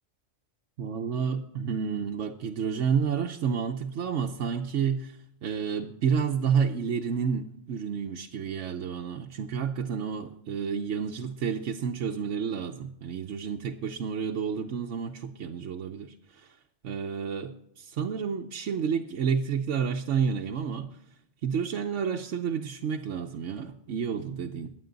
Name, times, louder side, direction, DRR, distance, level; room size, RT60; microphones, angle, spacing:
voice 1, 0.8-16.5 16.8-21.0 21.4-24.7, right 6 dB, 80° right, 2 dB, 1.1 m, -30 dB
22.0 x 8.3 x 3.9 m, 0.76 s
omnidirectional pair, 1.2 m